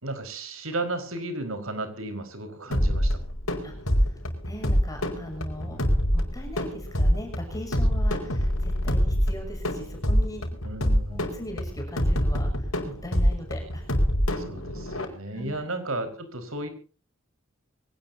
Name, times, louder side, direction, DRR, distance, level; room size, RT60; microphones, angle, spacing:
voice 1, 0.0-3.2 5.6-6.1 10.6-11.3 14.4-16.7, right 2 dB, 80° right, 8 dB, 4.7 m, -34 dB
sound 1, 2.7-15.0, equal, 85° left, 4.9 m, -25 dB
voice 2, 3.6-4.2 4.4-5.8 6.1-10.4 11.1-13.9 15.3-15.7, equal, 15° left, 3 dB, 6.6 m, -40 dB
24.0 x 18.0 x 2.7 m, 0.39 s
head